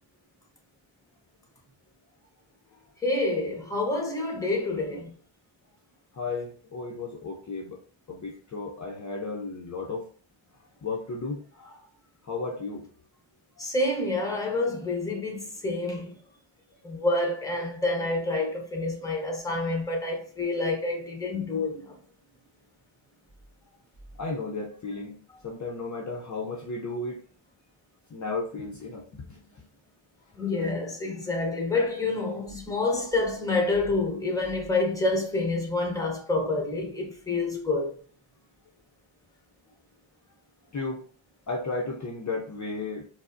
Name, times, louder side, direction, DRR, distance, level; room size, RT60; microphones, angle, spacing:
voice 1, 3.0-5.1 13.6-16.2 16.8-21.9 30.4-37.9, left 2 dB, 5° left, 0.9 m, -28 dB
voice 2, 6.2-7.8 8.1-10.1 10.8-11.8 12.3-12.9 24.2-25.2 25.4-27.2 28.1-29.4 40.7-41.0 41.5-43.1, left 3 dB, 40° left, 0.6 m, -34 dB
4.6 x 2.0 x 2.5 m
wide cardioid pair, 110°, 48 cm